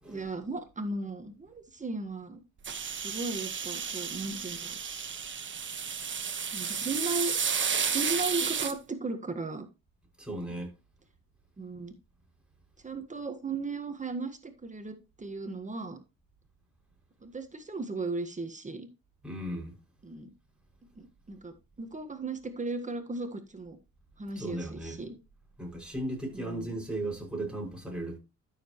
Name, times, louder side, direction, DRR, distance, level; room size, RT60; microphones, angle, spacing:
voice 1, 0.1-2.4 3.0-4.8 6.5-7.3 7.8-9.7 11.6-11.9 12.8-16.0 17.2-18.9 20.0-20.3 21.0-23.8 24.2-25.2 26.3-26.8, right 3 dB, 25° right, 1.6 m, -36 dB
sound 1, 2.6-8.7, right 6 dB, 40° right, 1.4 m, -32 dB
voice 2, 10.2-10.7 19.2-19.7 24.4-25.0 25.6-28.2, right 1 dB, 5° right, 6.1 m, -36 dB
13.0 x 7.0 x 3.1 m
cardioid pair, 90°, 30 cm